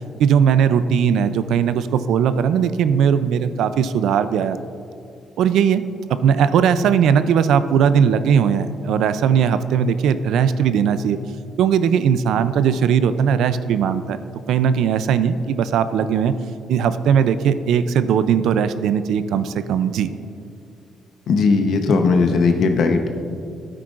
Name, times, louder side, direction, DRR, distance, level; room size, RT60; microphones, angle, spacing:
voice 1, 0.2-4.6 5.4-5.8 6.1-11.2 11.6-14.2 14.5-16.4 16.7-20.1, right 7 dB, 80° right, 12 dB, 0.4 m, -18 dB
voice 2, 21.3-23.2, left 4 dB, 70° left, 5 dB, 0.8 m, -18 dB
13.0 x 9.1 x 2.5 m, 2.5 s
cardioid pair, 90°, 0 cm